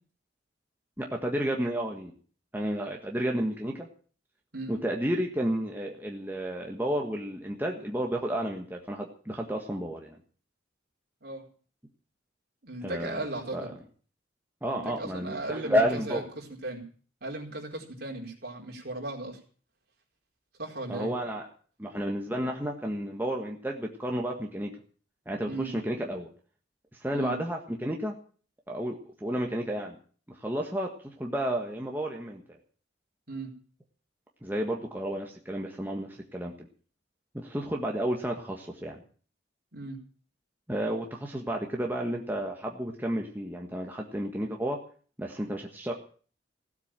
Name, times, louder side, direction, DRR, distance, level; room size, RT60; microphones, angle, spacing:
voice 1, 1.0-2.1 2.5-3.9 4.7-10.2 12.8-13.2 13.5-13.7 14.6-16.2 20.9-21.5 21.8-24.7 25.2-26.3 27.0-28.1 28.7-30.0 30.3-32.6 34.4-36.7 37.3-39.0 40.7-44.8 45.2-45.9, equal, 10° right, 0 dB, 1.6 m, -31 dB
voice 2, 12.6-13.7 14.6-16.8 17.2-19.4 20.6-21.1 25.5-25.8 27.1-27.4 33.3-33.5 39.7-40.0, right 2 dB, 55° right, 0 dB, 4.5 m, -37 dB
16.5 x 8.3 x 8.9 m, 0.43 s
head